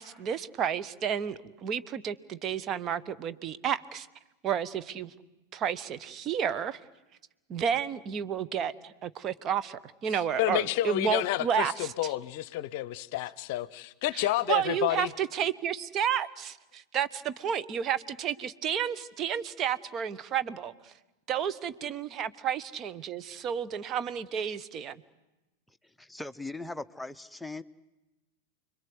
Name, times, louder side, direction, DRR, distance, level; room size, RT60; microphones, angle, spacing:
voice 1, 0.0-4.1 4.4-5.1 5.5-6.8 7.5-11.9 14.1-17.1 17.4-20.9 21.3-25.0, right 8 dB, 30° right, 14 dB, 1.1 m, -31 dB
voice 2, 10.4-15.1, left 15 dB, 50° left, 20 dB, 0.8 m, -30 dB
voice 3, 26.0-27.6, left 2 dB, 5° left, 10 dB, 0.9 m, -39 dB
30.0 x 22.5 x 8.0 m, 1.0 s
figure-of-eight pair, 90°, 0 cm